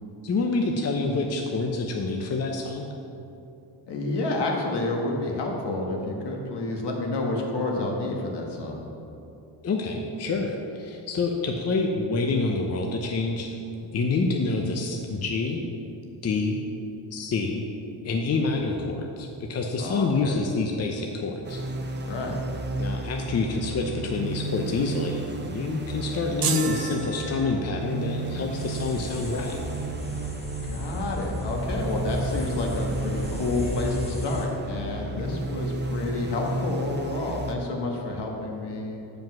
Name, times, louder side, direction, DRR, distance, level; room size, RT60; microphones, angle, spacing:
voice 1, 0.2-2.9 9.6-13.6 13.9-15.6 16.2-16.6 17.1-17.6 18.0-21.6 22.8-29.6 35.1-35.4, left 3 dB, 35° left, 2 dB, 0.6 m, -27 dB
voice 2, 3.9-8.8 19.8-20.4 22.0-22.4 30.6-39.0, left 2 dB, 65° left, 0 dB, 1.6 m, -29 dB
sound 1, 21.4-37.5, right 2 dB, 25° right, 0.7 m, -33 dB
sound 2, 26.4-28.0, right 6 dB, 50° right, 0.9 m, -31 dB
sound 3, 28.6-34.5, equal, 15° left, 1.0 m, -35 dB
7.5 x 5.2 x 6.0 m, 2.8 s
cardioid pair, 100°, 45 cm